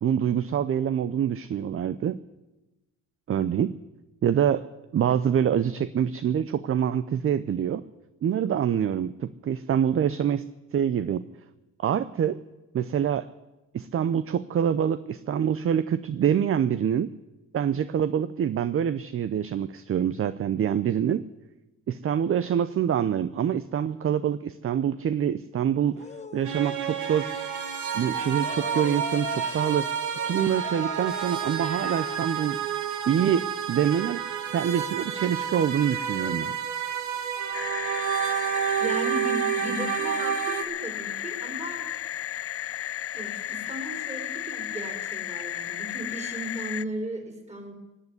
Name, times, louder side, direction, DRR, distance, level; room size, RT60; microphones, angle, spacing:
voice 1, 0.0-2.2 3.3-3.7 4.2-4.6 4.9-7.8 8.2-10.4 10.7-11.3 11.8-12.4 12.7-13.2 13.7-17.1 17.5-21.2 21.9-26.0 26.3-27.3 27.9-29.9 30.2-32.6 33.1-34.2 34.5-36.5, right 9 dB, 45° right, 13 dB, 0.6 m, -25 dB
sound 1, 25.9-26.7 28.0-32.2, left 4 dB, 25° left, 1.0 m, -40 dB
sound 2, 26.4-40.6, right 9 dB, 70° right, 2.0 m, -30 dB
sound 3, 37.5-46.8, left 12 dB, 50° left, 0.5 m, -34 dB
voice 2, 38.8-41.8 43.1-47.7, right 1 dB, 20° right, 3 dB, 4.4 m, -36 dB
17.5 x 8.3 x 9.6 m, 1.0 s
cardioid pair, 90°, 30 cm